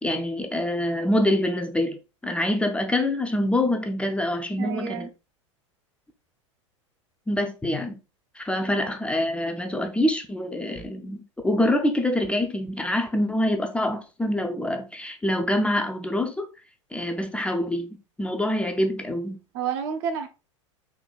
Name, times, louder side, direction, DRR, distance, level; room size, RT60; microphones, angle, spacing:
voice 1, 0.0-2.0 2.2-5.1 7.3-7.9 8.4-16.5 16.9-19.4, left 1 dB, 5° left, 0.4 m, -25 dB
voice 2, 4.6-5.1 8.6-8.8 19.5-20.3, right 7 dB, 50° right, 0.6 m, -30 dB
3.9 x 2.9 x 2.3 m
figure-of-eight pair, 85°, 16 cm